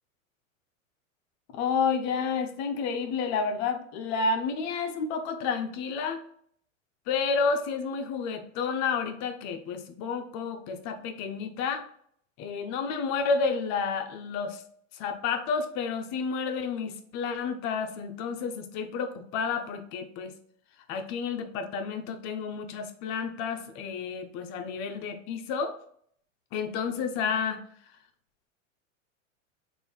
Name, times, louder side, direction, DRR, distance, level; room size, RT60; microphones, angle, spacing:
voice 1, 1.5-6.2 7.1-11.9 12.4-14.6 14.9-20.3 20.9-25.8 26.5-27.6, left 5 dB, 45° left, 7 dB, 0.7 m, -30 dB
3.2 x 2.7 x 4.4 m, 0.63 s
hypercardioid pair, 105°, 39 cm